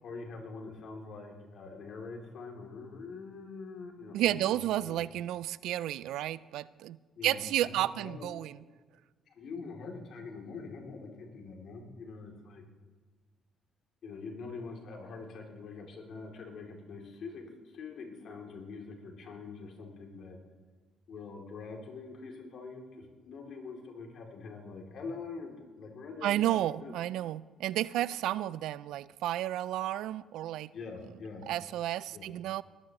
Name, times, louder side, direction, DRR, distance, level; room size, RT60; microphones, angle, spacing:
voice 1, 0.0-5.0 7.2-8.3 9.3-12.6 14.0-20.4 21.1-27.0 30.7-31.5 32.1-32.3, left 4 dB, 65° left, 1 dB, 2.7 m, -44 dB
voice 2, 4.1-7.0 7.2-8.5 26.2-30.7 31.5-32.6, right 13 dB, 80° right, 20 dB, 0.3 m, -32 dB
20.0 x 14.0 x 3.0 m, 1.4 s
supercardioid pair, 65°, 0 cm